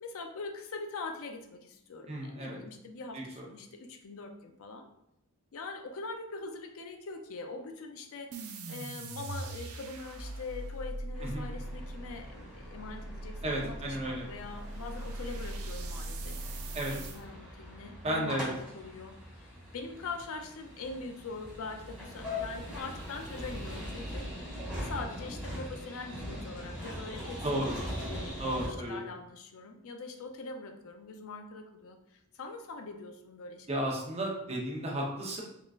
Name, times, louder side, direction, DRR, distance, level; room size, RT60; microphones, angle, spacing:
voice 1, 0.0-4.9 5.5-24.5 24.8-27.4 27.7-28.4 28.6-33.9, left 3 dB, 65° left, 6 dB, 0.5 m, -43 dB
voice 2, 2.1-2.6 3.1-3.2 11.2-11.4 13.4-14.3 16.7-16.9 18.0-18.5 27.4-27.8 28.4-29.0 33.7-35.4, right 1 dB, 30° right, -2 dB, 0.8 m, -33 dB
sound 1, 8.3-17.2, right 2 dB, 70° right, 0.5 m, -41 dB
sound 2, 11.1-28.7, left 1 dB, 5° right, 1.3 m, -42 dB
3.7 x 3.6 x 2.4 m, 0.81 s
head